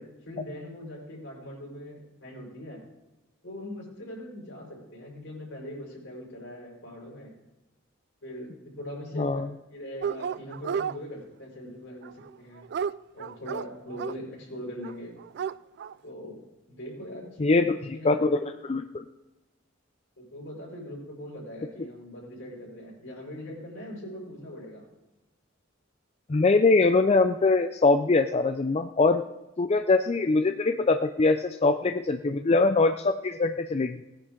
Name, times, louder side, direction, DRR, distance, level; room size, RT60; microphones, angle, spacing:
voice 1, 0.0-2.8 3.4-7.3 8.2-8.5 8.8-9.3 9.7-12.6 13.1-15.1 16.0-18.3 20.2-24.8 30.1-30.2, left 1 dB, 65° left, -2 dB, 5.2 m, -41 dB
voice 2, 9.2-9.5 17.4-17.8 18.0-19.0 26.3-29.2 29.6-34.0, left 3 dB, 30° left, 9 dB, 0.4 m, -23 dB
Dog, 10.0-11.0 12.0-14.1 14.8-14.9 15.2-15.9, right 7 dB, 55° right, 0.3 m, -32 dB
18.5 x 10.0 x 3.8 m, 1.0 s
head